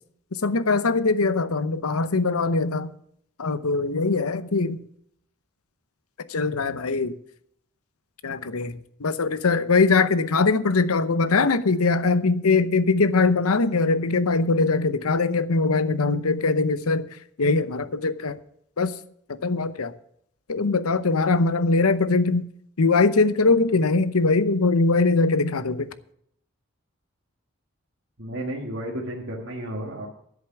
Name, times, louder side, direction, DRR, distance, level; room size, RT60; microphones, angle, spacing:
voice 1, 0.4-2.9 3.4-4.8 6.3-7.1 8.2-17.0 17.4-18.4 18.8-18.9 19.4-19.9 20.5-22.5 22.8-25.9, left 3 dB, 90° left, 0.8 m, -21 dB
voice 2, 28.2-30.1, right 1 dB, 55° right, 1.8 m, -32 dB
10.5 x 8.0 x 7.1 m
head